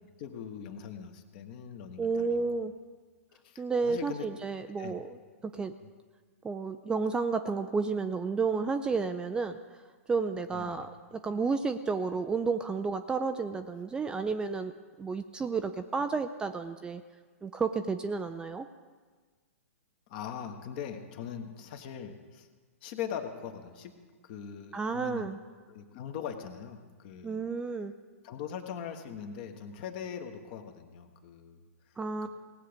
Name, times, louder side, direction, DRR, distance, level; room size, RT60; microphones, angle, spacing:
voice 1, 0.2-2.4 3.4-4.3 4.8-5.0 5.8-5.9 10.5-10.9 20.1-22.5 22.8-24.0 24.2-25.3 25.7-27.4 28.2-31.6 32.2-32.3, left 8 dB, 40° left, 6 dB, 1.4 m, -41 dB
voice 2, 2.0-2.7 3.6-5.2 5.4-5.7 6.4-9.6 10.1-14.7 15.0-17.0 17.4-18.7 24.7-25.4 27.2-27.9 32.0-32.3, right 4 dB, 10° right, 8 dB, 0.4 m, -31 dB
18.5 x 7.8 x 5.1 m, 1.5 s
figure-of-eight pair, 110°, 8 cm